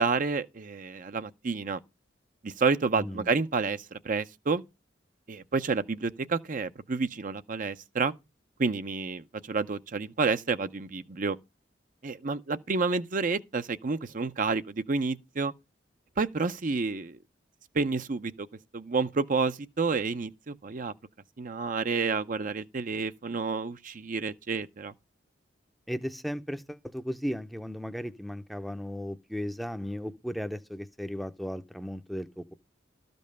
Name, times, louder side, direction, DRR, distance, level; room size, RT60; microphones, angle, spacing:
voice 1, 0.0-1.8 2.4-4.6 5.3-8.1 8.6-11.4 12.0-15.5 16.2-17.2 17.7-18.5 18.7-20.9 21.4-24.9, right 4 dB, 45° right, 0.6 m, -29 dB
voice 2, 2.9-3.3 25.9-32.5, equal, ahead, 0.6 m, -36 dB
13.0 x 5.3 x 6.6 m
head